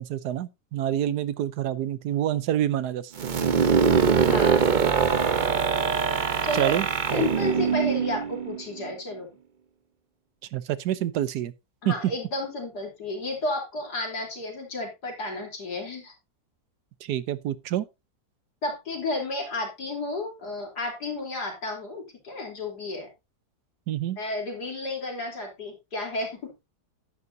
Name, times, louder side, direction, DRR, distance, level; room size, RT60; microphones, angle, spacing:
voice 1, 0.0-3.1 3.4-3.5 6.5-7.2 10.5-11.5 11.8-11.9 17.0-17.9 23.9-24.2, right 11 dB, 90° right, 1.3 m, -27 dB
sound 1, 3.2-8.9, right 6 dB, 45° right, 0.7 m, -23 dB
voice 2, 4.2-4.8 6.4-6.8 7.1-9.3 11.8-16.1 18.6-23.1 24.2-26.5, left 2 dB, 85° left, 3.9 m, -32 dB
10.5 x 9.5 x 2.7 m
omnidirectional pair, 1.7 m